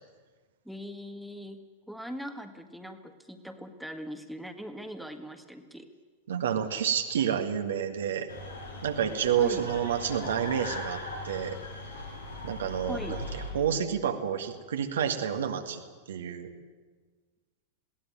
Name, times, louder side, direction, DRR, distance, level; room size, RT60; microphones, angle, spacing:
voice 1, 0.7-1.6 1.9-5.9 9.4-9.7 12.9-13.2, equal, ahead, 6 dB, 1.7 m, -40 dB
voice 2, 6.3-8.3 8.8-11.6 12.4-13.3 13.5-15.8 16.1-16.5, right 8 dB, 65° right, 6 dB, 1.8 m, -29 dB
sound 1, 8.3-13.5, left 2 dB, 80° left, 6.8 m, -39 dB
21.0 x 17.5 x 9.2 m, 1.4 s
figure-of-eight pair, 90°, 0 cm